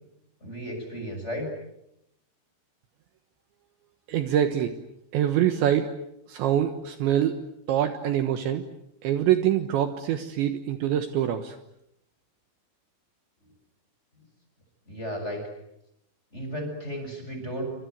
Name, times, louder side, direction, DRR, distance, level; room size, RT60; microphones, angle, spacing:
voice 1, 0.4-1.5 14.9-15.4 16.3-17.7, equal, 15° left, 4 dB, 6.8 m, -34 dB
voice 2, 4.1-4.7 5.1-5.9 6.3-7.4 7.7-8.6 9.0-11.6, right 10 dB, 70° right, 8 dB, 3.3 m, -24 dB
28.0 x 26.0 x 8.0 m, 0.81 s
omnidirectional pair, 5.9 m